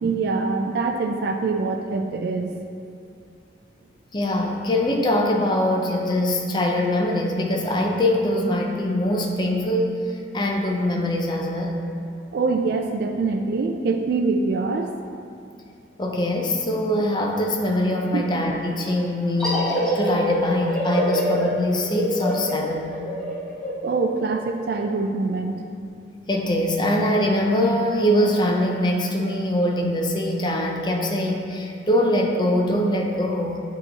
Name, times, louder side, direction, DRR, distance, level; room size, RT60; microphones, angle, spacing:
voice 1, 0.0-2.5 12.3-14.9 18.1-18.2 23.8-25.6, right 3 dB, 60° right, 4 dB, 0.3 m, -24 dB
voice 2, 4.1-11.8 16.0-22.9 26.3-33.6, left 1 dB, 25° left, 0 dB, 0.5 m, -23 dB
sound 1, 19.4-24.7, equal, 5° left, 1.0 m, -26 dB
8.9 x 3.0 x 4.0 m, 2.4 s
head